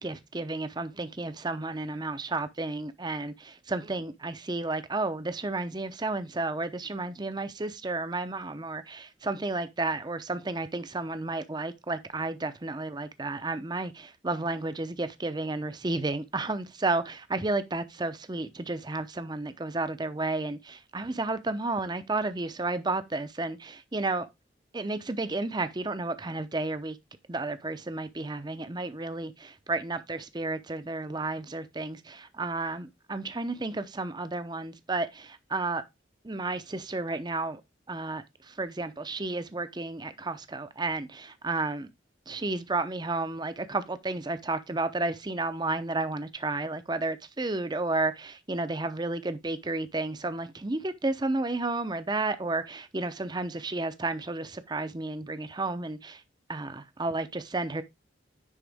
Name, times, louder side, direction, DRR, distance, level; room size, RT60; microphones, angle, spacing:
voice 1, 0.0-24.3 24.7-27.0 27.3-35.8 36.2-37.6 37.9-41.9 42.3-56.2 56.5-57.8, right 2 dB, 25° right, 0.7 m, -32 dB
10.0 x 3.8 x 3.5 m
head